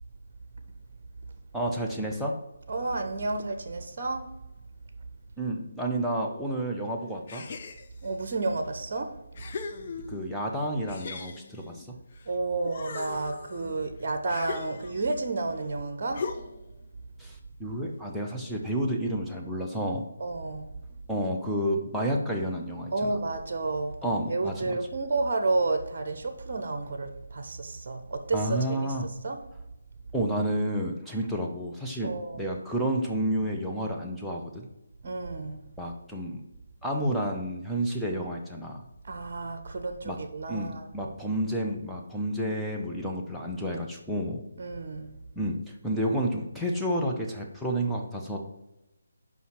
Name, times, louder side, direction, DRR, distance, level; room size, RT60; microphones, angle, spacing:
voice 1, 1.5-2.3 5.4-7.4 10.1-11.9 17.2-20.1 21.1-23.1 24.0-24.8 28.3-29.1 30.1-34.7 35.8-36.4 36.8-38.8 40.0-40.2 40.5-44.4 45.4-48.4, right 1 dB, ahead, 0.9 m, -30 dB
voice 2, 2.7-4.3 8.0-9.1 12.3-16.3 20.2-20.7 22.9-24.0 24.3-28.9 29.2-29.4 32.0-32.5 35.0-35.6 39.0-40.9 44.6-45.1, right 3 dB, 45° right, 1.0 m, -31 dB
sound 1, 7.3-8.1 8.8-8.9 9.3-10.4 10.9-12.3 12.6-15.2 16.1-16.7, left 5 dB, 40° left, 0.7 m, -39 dB
5.6 x 5.4 x 5.9 m
figure-of-eight pair, 150°, 0 cm